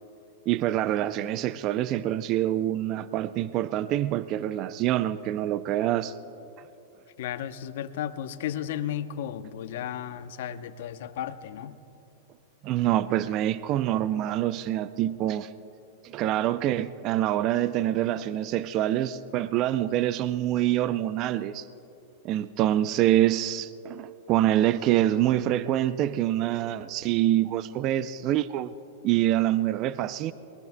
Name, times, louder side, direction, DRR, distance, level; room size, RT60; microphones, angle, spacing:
voice 1, 0.5-6.1 12.6-15.5 16.0-21.7 22.2-28.7 29.0-30.3, right 13 dB, 40° right, 15 dB, 0.4 m, -26 dB
voice 2, 7.2-11.8, left 10 dB, 65° left, 12 dB, 0.7 m, -34 dB
23.0 x 20.0 x 2.2 m, 2.8 s
hypercardioid pair, 135°, 0 cm